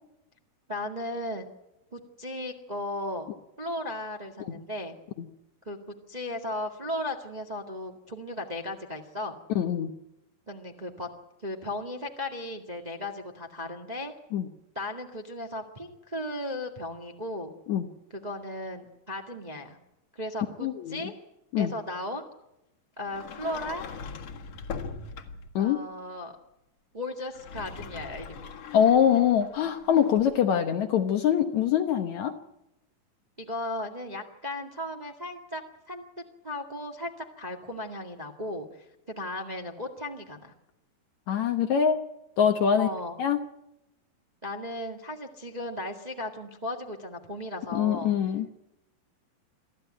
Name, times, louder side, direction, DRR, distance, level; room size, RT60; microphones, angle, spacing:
voice 1, 0.7-1.5 1.9-3.3 3.6-4.9 5.6-5.8 6.1-9.3 10.5-11.1 11.4-14.1 14.7-17.5 18.1-19.8 20.1-21.1 21.6-22.2 23.0-23.8 25.6-26.3 26.9-28.5 33.4-35.6 35.9-36.0 36.4-38.6 39.1-40.5 42.8-43.2 44.4-48.1, left 1 dB, 20° right, 3 dB, 1.1 m, -36 dB
voice 2, 9.6-9.9 14.3-14.5 17.7-17.9 20.6-21.0 21.5-21.7 25.6-25.8 28.7-32.3 41.3-42.0 42.4-42.9 43.2-43.4 47.7-48.5, left 8 dB, 65° left, 7 dB, 2.0 m, -24 dB
Sliding door, 23.1-25.6 27.2-30.4, left 5 dB, 50° left, 2.4 m, -41 dB
24.5 x 14.5 x 9.0 m, 0.87 s
omnidirectional pair, 4.1 m